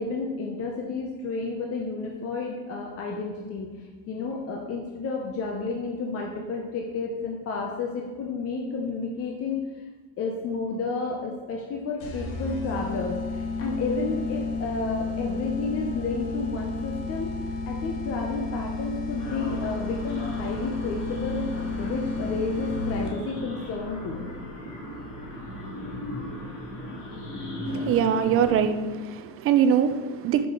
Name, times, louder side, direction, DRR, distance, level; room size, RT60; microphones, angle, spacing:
voice 1, 0.0-9.7 10.2-17.3 17.7-24.3, left 4 dB, 40° left, 0 dB, 0.7 m, -31 dB
sound 1, 12.0-23.4, left 3 dB, 85° left, 1.3 m, -32 dB
sound 2, 19.2-28.6, left 1 dB, 60° left, 1.8 m, -37 dB
voice 2, 27.7-30.4, right 8 dB, 40° right, 10 dB, 0.4 m, -23 dB
6.1 x 4.9 x 3.7 m, 1.4 s
cardioid pair, 140°, 37 cm